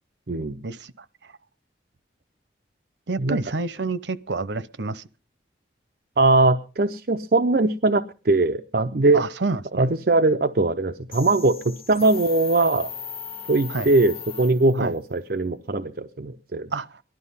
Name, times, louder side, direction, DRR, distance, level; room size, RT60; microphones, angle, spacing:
voice 1, 0.3-0.6 3.2-3.4 6.2-9.2 9.8-12.9 13.5-16.7, right 2 dB, 55° right, 0.7 m, -21 dB
voice 2, 3.1-5.0 9.1-9.9 13.7-13.9 14.7-14.9 16.7-17.0, right 3 dB, 90° right, 0.8 m, -28 dB
sound 1, 11.1-15.0, left 7 dB, 30° left, 1.2 m, -38 dB
18.0 x 12.0 x 5.6 m
head